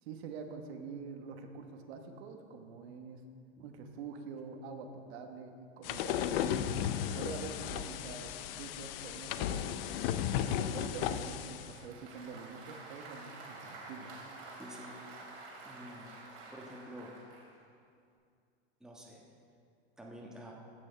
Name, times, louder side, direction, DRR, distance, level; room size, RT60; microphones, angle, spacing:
voice 1, 0.0-3.2 3.6-9.9 10.7-14.1, right 5 dB, 70° right, 5 dB, 1.2 m, -46 dB
sound 1, 5.8-11.7, left 9 dB, 60° left, 0.6 m, -35 dB
Applause, 11.5-17.5, right 3 dB, 90° right, 3.0 m, -49 dB
voice 2, 14.6-14.9 15.6-16.1 16.5-17.1 18.8-19.2 20.0-20.5, equal, ahead, -2 dB, 1.3 m, -49 dB
15.5 x 6.3 x 4.4 m, 2.3 s
supercardioid pair, 135°, 33 cm